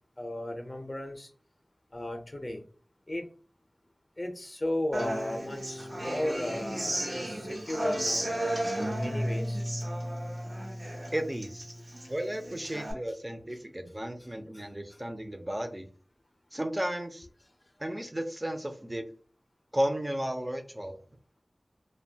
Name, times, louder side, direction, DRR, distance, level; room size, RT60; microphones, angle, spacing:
voice 1, 0.2-1.3 1.9-2.6 3.1-3.3 4.2-7.0 7.3-8.3 8.8-9.6 14.5-14.6 14.9-15.0, left 1 dB, 40° left, 4 dB, 0.5 m, -35 dB
Human voice / Acoustic guitar, 4.9-12.9, right 1 dB, 75° right, 0.9 m, -34 dB
voice 2, 11.1-11.7 12.1-15.9 16.5-17.3 17.8-19.1 19.7-21.0, right 1 dB, 25° right, 6 dB, 0.5 m, -34 dB
2.6 x 2.2 x 2.7 m, 0.40 s
wide cardioid pair, 50°, 0 cm